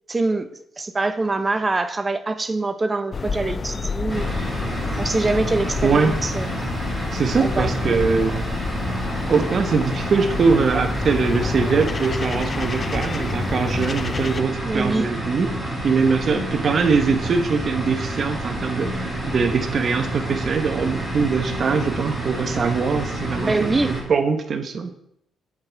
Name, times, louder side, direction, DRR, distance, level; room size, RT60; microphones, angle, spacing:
voice 1, 0.1-0.5 0.8-4.3 5.0-6.5 7.4-8.0 14.7-15.1 23.4-23.9, right 3 dB, 25° right, 0.6 m, -24 dB
sound 1, 3.1-14.4, left 4 dB, 35° left, 0.4 m, -29 dB
sound 2, 4.1-24.0, right 1 dB, 5° left, 3.3 m, -29 dB
voice 2, 5.8-6.2 7.1-8.4 9.3-15.5 15.8-24.9, right 5 dB, 50° right, 0.9 m, -22 dB
8.5 x 6.1 x 3.4 m
cardioid pair, 90°, 0 cm